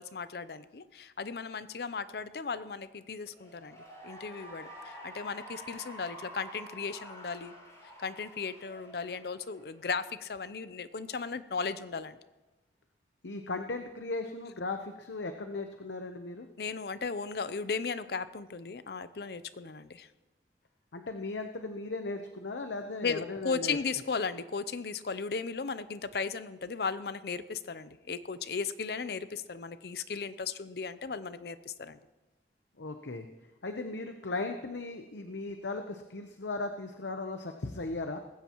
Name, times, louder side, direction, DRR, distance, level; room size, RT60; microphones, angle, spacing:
voice 1, 0.0-3.8 4.0-7.5 8.0-12.2 16.6-20.1 23.0-32.0, left 5 dB, 60° left, 13 dB, 0.5 m, -36 dB
Cheering / Applause, 3.2-9.9, equal, 20° left, 6.4 m, -48 dB
voice 2, 13.2-16.5 20.9-23.8 32.8-33.3 33.6-38.2, left 3 dB, 90° left, 6 dB, 0.8 m, -37 dB
19.5 x 15.5 x 3.0 m, 1.1 s
head